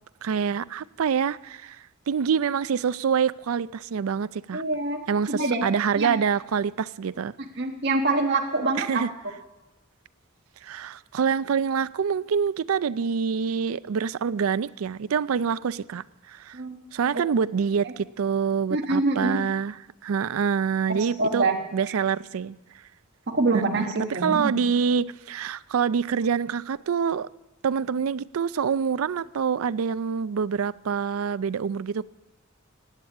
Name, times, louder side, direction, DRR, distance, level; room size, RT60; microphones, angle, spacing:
voice 1, 0.2-1.8 2.1-4.6 5.1-7.3 8.8-9.1 10.6-16.6 16.9-19.8 20.0-21.5 21.7-22.6 23.5-27.3 27.6-32.1, right 6 dB, 85° right, 0.4 m, -26 dB
voice 2, 4.5-5.0 5.3-5.6 6.0-6.2 7.6-9.0 16.5-16.8 17.8-17.9 18.7-19.4 20.9-21.6 21.9-22.0 23.3-24.6, right 3 dB, 55° right, 1.2 m, -25 dB
17.0 x 8.8 x 8.3 m
head